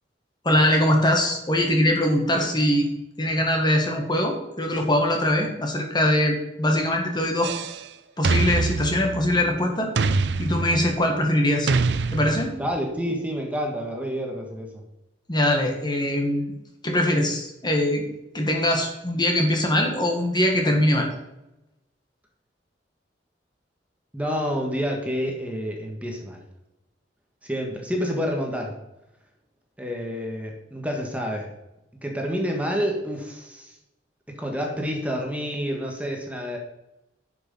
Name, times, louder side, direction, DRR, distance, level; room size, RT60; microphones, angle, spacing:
voice 1, 0.4-2.9 3.2-7.5 8.2-9.9 10.4-11.7 12.1-12.6 15.3-16.5 16.8-18.0 18.3-21.1, left 1 dB, 25° left, 2 dB, 1.7 m, -22 dB
sound 1, 7.4-7.8 8.2-9.5 10.0-11.1 11.7-12.7, right 4 dB, 70° right, 0.6 m, -25 dB
voice 2, 12.6-14.8 24.1-26.4 27.4-28.8 29.8-31.5 32.0-33.8 34.3-36.6, equal, 10° right, 1 dB, 1.4 m, -28 dB
10.5 x 5.9 x 5.3 m, 0.92 s
head